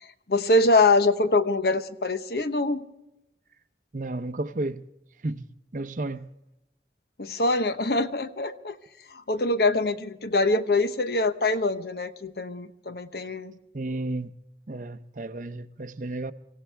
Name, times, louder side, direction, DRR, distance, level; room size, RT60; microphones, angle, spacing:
voice 1, 0.0-2.8 7.2-8.8 9.1-13.5, left 2 dB, 60° left, 1.0 m, -24 dB
voice 2, 3.9-4.8 5.2-5.5 5.7-6.3 13.7-14.3 14.7-16.3, right 2 dB, 45° right, 0.7 m, -32 dB
25.5 x 16.5 x 3.4 m
head